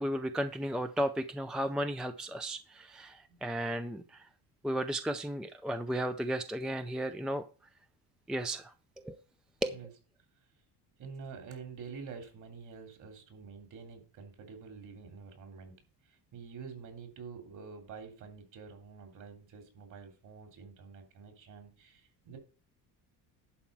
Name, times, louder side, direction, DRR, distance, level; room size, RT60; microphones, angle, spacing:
voice 1, 0.0-4.3 4.6-7.4 8.3-8.7 9.0-9.2 9.6-9.8, right 1 dB, ahead, 0.4 m, -34 dB
voice 2, 11.0-15.8 16.1-22.4, right 5 dB, 50° right, 3.3 m, -48 dB
11.0 x 4.6 x 7.4 m
cardioid pair, 160°, 39 cm